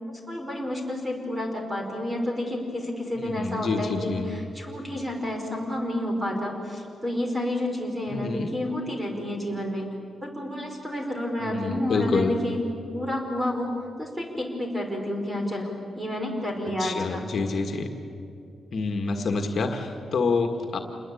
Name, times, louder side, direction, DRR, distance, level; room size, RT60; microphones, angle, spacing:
voice 1, 0.3-9.9 10.2-12.6 12.9-13.7 14.0-17.2, left 1 dB, 10° right, 2 dB, 5.1 m, -30 dB
voice 2, 3.2-4.3 8.1-8.5 11.4-12.3 16.8-17.9 18.7-20.8, left 4 dB, 50° left, 5 dB, 1.8 m, -27 dB
28.0 x 21.0 x 8.6 m, 2.7 s
wide cardioid pair, 135°, 0 cm